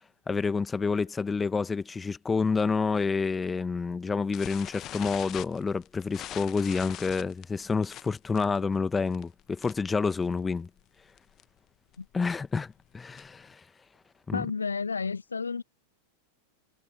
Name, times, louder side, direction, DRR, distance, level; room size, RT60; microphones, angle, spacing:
voice 1, 0.3-10.7 12.1-13.6 14.3-14.5, left 4 dB, 15° left, 1.7 m, -28 dB
sound 1, 4.3-10.0 10.2-10.5 10.8-10.9 11.2-11.4 11.9-13.5, left 13 dB, 35° left, 1.2 m, -43 dB
voice 2, 14.3-15.6, left 5 dB, 75° left, 1.3 m, -31 dB
figure-of-eight pair, 90°, 0 cm